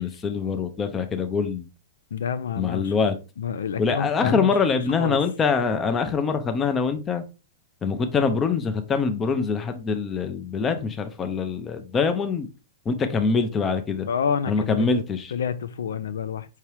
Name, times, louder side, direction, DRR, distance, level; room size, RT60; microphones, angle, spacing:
voice 1, 0.0-1.7 2.6-3.2 3.8-7.2 7.8-12.5 12.9-14.1 14.5-15.3, left 5 dB, 20° left, 0.6 m, -24 dB
voice 2, 2.1-2.9 3.4-4.5 5.0-5.2 14.1-14.9 15.3-16.5, left 7 dB, 85° left, 0.3 m, -28 dB
4.6 x 2.8 x 3.2 m
hypercardioid pair, 140°, 0 cm